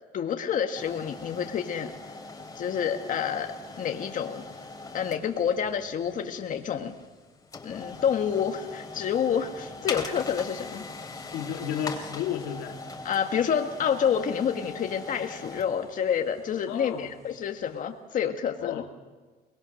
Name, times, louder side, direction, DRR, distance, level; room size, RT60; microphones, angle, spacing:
voice 1, 0.1-1.9 2.5-3.5 3.8-4.4 4.9-6.9 7.6-10.8 13.0-18.8, left 8 dB, 50° left, 4 dB, 1.6 m, -28 dB
sound 1, 0.7-17.6, left 3 dB, 20° left, 2.9 m, -41 dB
voice 2, 11.3-12.8 16.7-17.1 18.6-18.9, left 9 dB, 90° left, 3 dB, 2.3 m, -32 dB
23.5 x 20.5 x 6.4 m, 1.3 s
cardioid pair, 110°, 17 cm